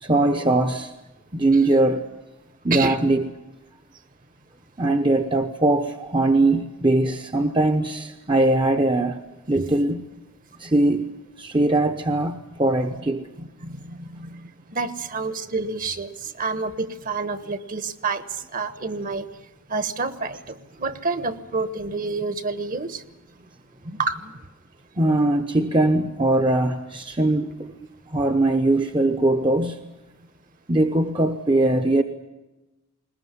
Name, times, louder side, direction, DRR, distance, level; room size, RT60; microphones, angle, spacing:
voice 1, 0.0-0.9 1.3-2.1 2.6-3.3 4.8-10.0 10.6-13.3 25.0-27.8 28.1-29.8 30.7-32.0, right 2 dB, 20° right, 0.9 m, -21 dB
voice 2, 13.4-19.3 19.7-23.0 23.8-24.3, right 4 dB, 35° right, 1.2 m, -29 dB
21.5 x 20.5 x 9.7 m
head